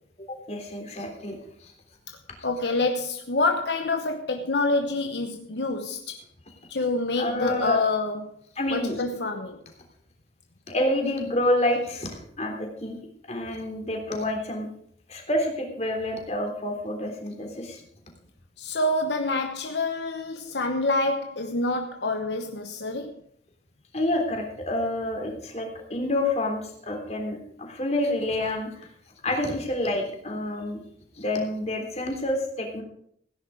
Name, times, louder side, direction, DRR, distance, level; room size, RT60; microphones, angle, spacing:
voice 1, 0.3-1.4 1.6-1.7 7.2-7.8 8.6-9.0 10.7-13.0 13.3-14.7 15.1-17.8 23.9-28.9 29.2-30.8 31.2-32.8, left 1 dB, 35° left, 3.4 m, -28 dB
voice 2, 2.4-6.2 6.7-8.3 8.7-9.6 18.6-23.2, left 2 dB, 70° left, 1.1 m, -27 dB
16.5 x 10.0 x 4.9 m
head